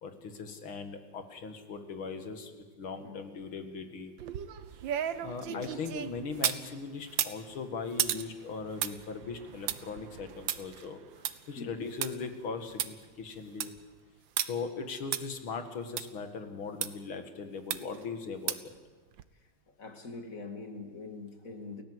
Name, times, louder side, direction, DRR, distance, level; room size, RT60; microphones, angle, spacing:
voice 1, 0.0-4.1 5.2-13.7 14.5-18.7, left 4 dB, 90° left, 7 dB, 2.8 m, -39 dB
sound 1, 4.2-6.7 7.1-12.1 12.5-12.6 12.8-12.9 13.3-13.8 14.4-14.5 15.1-15.2 16.0-16.1 16.8-16.9 17.7-18.0 18.5-18.8 19.2-19.3, right 10 dB, 70° right, 1.6 m, -34 dB
voice 2, 5.2-5.8 11.5-11.8 19.8-21.8, left 3 dB, 40° left, 5 dB, 2.4 m, -44 dB
29.0 x 17.0 x 8.1 m, 1.4 s
omnidirectional pair, 2.2 m